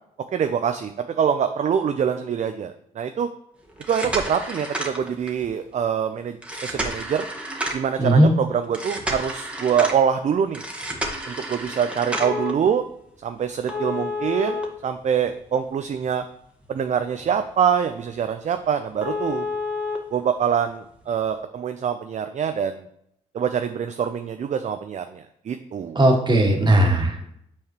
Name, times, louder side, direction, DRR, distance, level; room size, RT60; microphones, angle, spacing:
voice 1, 0.3-3.3 3.9-6.4 6.6-7.3 7.7-10.6 11.3-12.8 13.2-16.2 16.7-19.5 20.1-22.9 23.3-26.0, right 7 dB, 45° right, 8 dB, 0.5 m, -24 dB
sound 1, 3.7-5.5 6.4-8.0 8.7-10.0 10.5-12.5 13.7-15.5 16.0-16.1 16.6-16.7 17.2-17.3 17.6-17.7 18.1-18.2 18.5-18.6 19.0-20.0 21.1-21.2, left 1 dB, 5° right, 1.4 m, -30 dB
voice 2, 8.0-8.3 26.0-27.3, right 1 dB, 25° right, 2 dB, 1.8 m, -17 dB
7.3 x 4.7 x 3.0 m, 0.73 s
hypercardioid pair, 50°, 18 cm